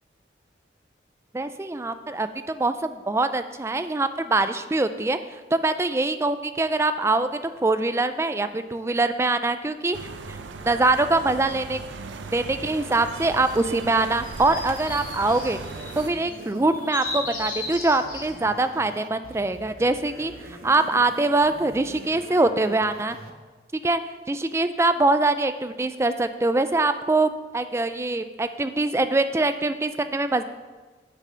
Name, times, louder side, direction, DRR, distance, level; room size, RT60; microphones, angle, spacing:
voice 1, 1.3-11.8 12.3-15.6 16.0-23.2 23.8-24.0 24.3-30.4, right 2 dB, 15° right, 10 dB, 0.3 m, -23 dB
sound 1, 9.9-16.1, right 4 dB, 85° right, 0.6 m, -38 dB
sound 2, 13.1-18.3, left 3 dB, 45° left, 1.8 m, -36 dB
sound 3, 14.9-23.3, right 1 dB, 55° right, 0.9 m, -44 dB
7.2 x 6.8 x 5.7 m, 1.3 s
head